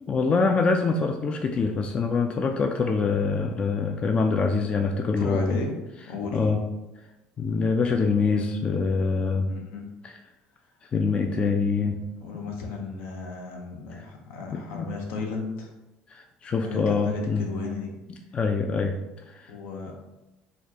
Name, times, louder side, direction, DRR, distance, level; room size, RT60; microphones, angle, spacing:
voice 1, 0.0-5.6 6.3-6.6 7.4-9.5 10.0-10.1 10.9-12.0 14.5-14.9 16.1-17.5 18.3-19.0 19.3-19.5, left 4 dB, 30° left, 4 dB, 0.3 m, -25 dB
voice 2, 5.2-5.8 6.1-6.5 9.5-9.9 12.2-15.7 16.6-17.9 19.5-19.9, left 4 dB, 75° left, 2 dB, 0.7 m, -34 dB
4.2 x 2.3 x 2.8 m, 1.0 s
supercardioid pair, 100°, 3 cm